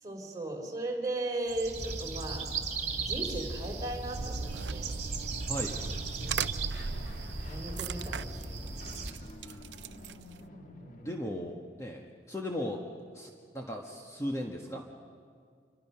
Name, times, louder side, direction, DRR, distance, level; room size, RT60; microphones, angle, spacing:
voice 1, 0.0-2.5 2.9-4.9 6.2-6.4 7.5-8.6 10.8-11.0, right 2 dB, 20° right, 1 dB, 3.9 m, -37 dB
sound 1, 1.5-9.1, right 4 dB, 40° right, 2.7 m, -37 dB
sound 2, 4.1-10.5, right 6 dB, 80° right, 0.5 m, -39 dB
voice 2, 5.5-5.8 9.4-9.6 11.0-12.8 13.1-14.8, equal, 15° left, 0 dB, 1.5 m, -37 dB
sound 3, 6.7-11.9, left 1 dB, 50° left, 1.9 m, -50 dB
27.5 x 25.0 x 5.8 m, 2.2 s
head